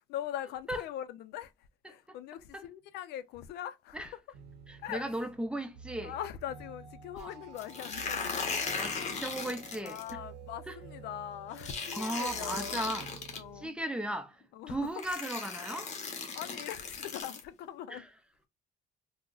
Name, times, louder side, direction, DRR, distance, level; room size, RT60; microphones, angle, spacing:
voice 1, 0.1-1.5 1.9-4.2 4.8-5.1 6.0-9.2 9.8-12.8 13.3-13.8 14.5-14.9 16.3-18.1, left 11 dB, 75° left, 0.4 m, -41 dB
sound 1, 4.3-13.7, right 6 dB, 80° right, 0.7 m, -50 dB
voice 2, 4.7-6.1 7.1-7.3 8.7-10.2 10.7-10.8 11.9-13.1 13.6-14.4 14.7-15.9 17.9-18.0, right 1 dB, 5° right, 0.5 m, -36 dB
sound 2, 7.6-10.1 11.6-13.4 14.4-14.5 15.0-17.4, left 5 dB, 45° left, 0.9 m, -37 dB
3.6 x 2.1 x 2.3 m
cardioid pair, 110°, 17 cm